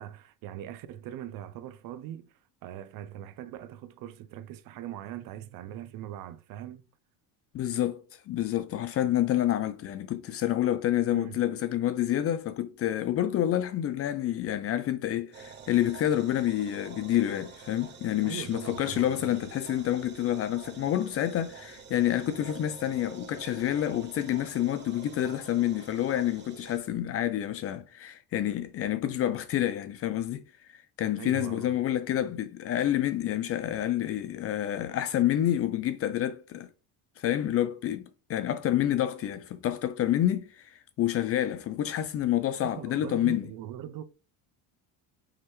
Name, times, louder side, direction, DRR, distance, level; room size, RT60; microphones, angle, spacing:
voice 1, 0.0-2.3 2.6-6.9 11.1-11.4 18.2-19.5 31.2-31.8 42.6-44.0, right 11 dB, 55° right, 0.6 m, -41 dB
voice 2, 7.5-30.4 30.7-36.7 37.2-43.5, left 12 dB, 35° left, 0.4 m, -28 dB
sound 1, 15.3-26.8, right 6 dB, 30° right, 0.8 m, -48 dB
4.8 x 3.2 x 3.1 m
cardioid pair, 125°, 39 cm